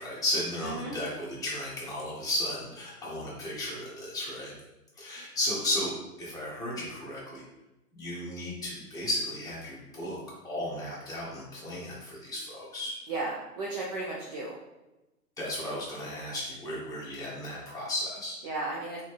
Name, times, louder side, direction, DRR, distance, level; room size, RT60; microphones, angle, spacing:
voice 1, 0.0-4.5 5.0-5.9 6.2-7.4 7.9-10.2 10.4-13.0 15.4-18.4, left 1 dB, 5° left, -7 dB, 1.6 m, -34 dB
voice 2, 0.6-1.0 13.1-14.6 18.4-19.0, right 2 dB, 25° right, -4 dB, 0.6 m, -34 dB
4.0 x 3.9 x 3.3 m, 0.99 s
hypercardioid pair, 130°, 47 cm